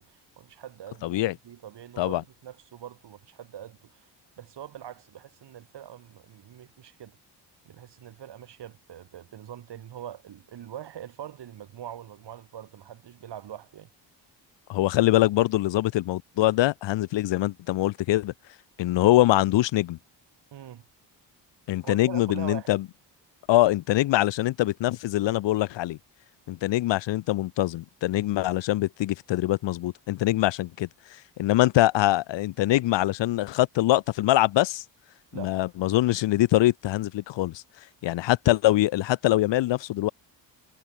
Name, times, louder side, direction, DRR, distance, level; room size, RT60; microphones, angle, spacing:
voice 1, 0.0-4.1 4.4-7.2 7.6-13.9 20.5-20.9 21.8-22.7 35.3-35.6, right 10 dB, 65° right, 2.8 m, -43 dB
voice 2, 1.0-1.3 2.0-2.2 14.7-18.3 18.8-20.0 21.7-22.8 23.5-26.0 26.5-30.9 31.4-34.8 35.3-37.6 38.0-40.1, left 16 dB, 75° left, 0.8 m, -23 dB
cardioid pair, 85°, 44 cm